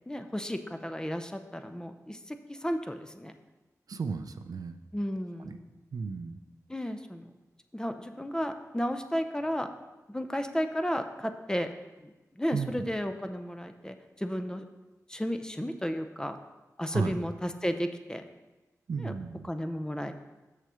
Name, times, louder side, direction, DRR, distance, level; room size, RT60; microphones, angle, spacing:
voice 1, 0.1-3.3 4.9-5.7 6.7-7.2 7.7-9.7 10.1-11.7 12.0-14.6 15.1-16.4 16.8-18.2 19.0-19.1 19.5-20.1, equal, 10° left, 7 dB, 0.6 m, -33 dB
voice 2, 3.9-4.8 5.4-5.6 5.9-6.4 12.5-12.7 16.9-17.2 18.9-19.5, right 5 dB, 75° right, 9 dB, 0.5 m, -34 dB
6.7 x 6.5 x 4.9 m, 1.1 s
cardioid pair, 55°, 6 cm